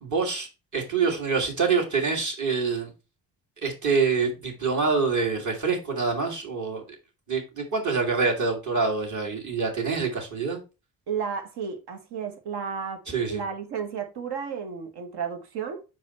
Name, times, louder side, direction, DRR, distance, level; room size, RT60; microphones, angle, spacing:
voice 1, 0.0-2.9 3.6-6.8 7.3-10.6 13.1-13.4, right 4 dB, 40° right, 2.4 m, -26 dB
voice 2, 11.1-13.0 13.3-15.8, right 6 dB, 60° right, 1.4 m, -32 dB
5.5 x 4.7 x 4.2 m
figure-of-eight pair, 40°, 46 cm